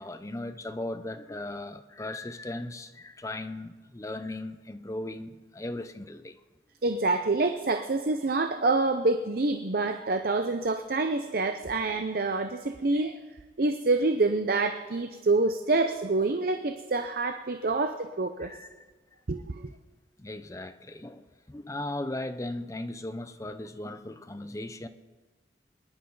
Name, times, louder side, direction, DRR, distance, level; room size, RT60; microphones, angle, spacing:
voice 1, 0.0-6.4 18.4-18.9 20.2-24.9, left 1 dB, 20° left, 0.6 m, -37 dB
voice 2, 6.8-13.2 13.6-18.5 19.3-19.7, right 3 dB, 55° right, 0.6 m, -27 dB
22.5 x 11.0 x 4.0 m
head